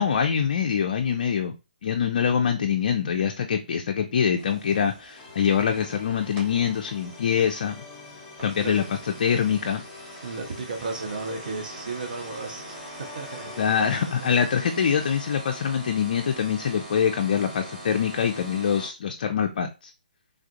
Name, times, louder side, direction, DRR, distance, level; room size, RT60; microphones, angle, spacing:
voice 1, 0.0-1.5 1.8-7.8 8.4-9.8 13.6-19.9, left 7 dB, 55° left, 5 dB, 0.4 m, -24 dB
sound 1, 4.4-18.9, right 1 dB, 20° right, 1.3 m, -43 dB
sound 2, 5.2-13.8, left 4 dB, 25° left, 0.8 m, -46 dB
voice 2, 10.2-13.5 13.8-13.9 14.8-15.0, right 3 dB, 60° right, 4 dB, 0.6 m, -34 dB
3.4 x 2.4 x 2.6 m, 0.29 s
figure-of-eight pair, 140°, 5 cm